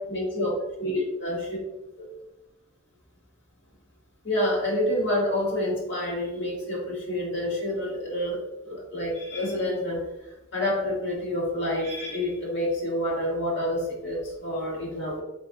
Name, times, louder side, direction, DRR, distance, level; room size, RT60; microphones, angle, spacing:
voice 1, 0.1-1.6 2.0-2.1 4.2-10.0 10.5-15.2, left 1 dB, 60° left, -4 dB, 1.5 m, -28 dB
4.3 x 3.8 x 2.7 m, 0.96 s
head